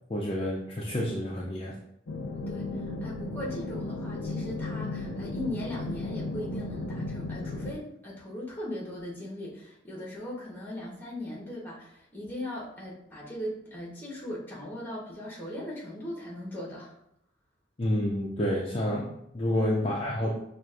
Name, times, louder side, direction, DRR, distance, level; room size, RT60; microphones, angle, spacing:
voice 1, 0.1-1.8 17.8-20.4, left 1 dB, 30° left, -5 dB, 0.5 m, -29 dB
sound 1, 2.1-7.7, left 2 dB, 85° left, 0.6 m, -35 dB
voice 2, 2.5-16.9 19.8-19.9, left 1 dB, 10° left, -4 dB, 1.1 m, -39 dB
6.0 x 2.4 x 2.4 m, 0.77 s
head